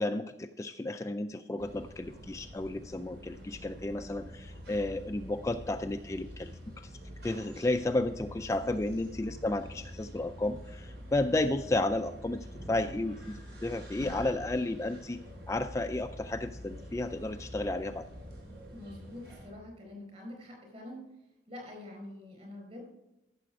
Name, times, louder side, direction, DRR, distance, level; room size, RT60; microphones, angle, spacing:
voice 1, 0.0-6.9 7.2-15.2 15.5-18.1, left 2 dB, 15° left, 7 dB, 0.3 m, -32 dB
sound 1, 1.6-19.5, equal, 75° right, 3.5 m, -46 dB
voice 2, 18.7-21.1 21.5-22.8, left 1 dB, 35° right, 1 dB, 4.4 m, -46 dB
14.0 x 6.9 x 4.8 m, 0.95 s
head